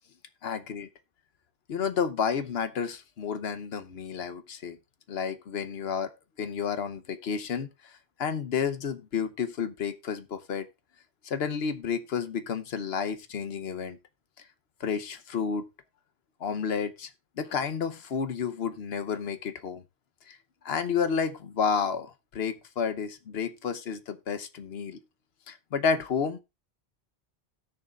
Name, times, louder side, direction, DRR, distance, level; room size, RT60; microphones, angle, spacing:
voice 1, 0.4-0.9 1.7-4.8 5.1-6.1 6.4-10.7 11.2-14.0 14.8-15.7 16.4-17.1 17.4-19.8 20.3-20.4 20.6-25.0 25.5-26.4, left 6 dB, 75° left, 1.1 m, -31 dB
17.0 x 6.5 x 2.4 m
omnidirectional pair, 1.1 m